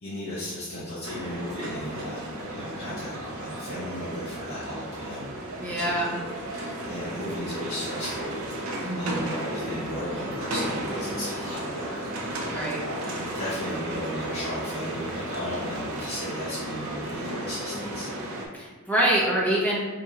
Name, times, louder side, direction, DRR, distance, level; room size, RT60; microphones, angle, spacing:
voice 1, 0.0-5.3 5.8-18.1, left 1 dB, 60° left, -10 dB, 0.9 m, -36 dB
sound 1, 1.0-18.5, right 1 dB, 80° right, 0.6 m, -34 dB
voice 2, 5.6-6.1 8.8-9.3 12.5-12.8 18.5-19.8, right 1 dB, 10° left, -6 dB, 0.8 m, -25 dB
4.6 x 2.5 x 2.8 m, 1.3 s
head